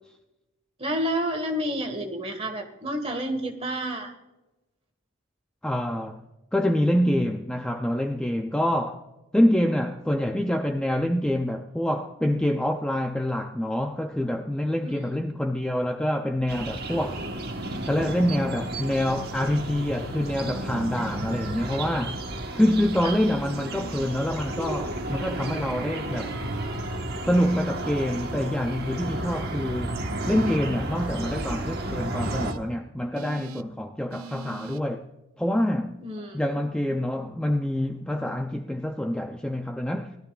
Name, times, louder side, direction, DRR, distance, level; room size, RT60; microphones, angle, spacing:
voice 1, 0.8-4.1 14.8-15.1 23.0-23.1 36.0-36.4, equal, 25° right, 1.6 m, -30 dB
voice 2, 5.6-6.2 6.5-9.0 9.3-17.3 17.9-22.2 22.5-26.3 27.3-30.0 30.3-35.1 35.4-36.0 36.3-40.2, left 1 dB, 5° left, 0.4 m, -26 dB
sound 1, 16.5-32.5, right 1 dB, 45° right, 1.3 m, -32 dB
sound 2, 20.4-21.7 22.6-24.1 25.0-26.7 27.4-28.8 30.2-30.6 31.3-31.5 32.2-32.6 33.1-33.6 34.1-34.8, right 4 dB, 85° right, 0.6 m, -42 dB
19.0 x 13.0 x 2.4 m
head